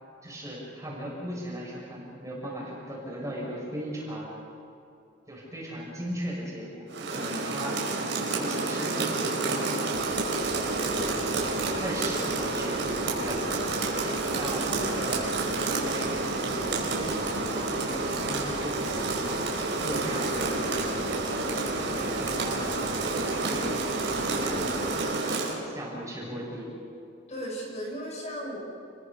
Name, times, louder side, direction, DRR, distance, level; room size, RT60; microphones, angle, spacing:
voice 1, 0.2-4.3 5.3-7.8 8.3-10.0 10.5-13.5 14.4-15.3 15.5-19.4 19.8-21.5 21.8-23.8 24.1-26.7, equal, 15° right, -4 dB, 7.1 m, -38 dB
Rain, 6.9-25.6, right 3 dB, 70° right, 4.7 m, -29 dB
sound 1, 9.9-24.9, equal, 55° left, 6.6 m, -47 dB
voice 2, 14.6-15.2 27.3-28.6, equal, 35° left, -3 dB, 6.0 m, -37 dB
29.5 x 21.5 x 5.5 m, 2.7 s
head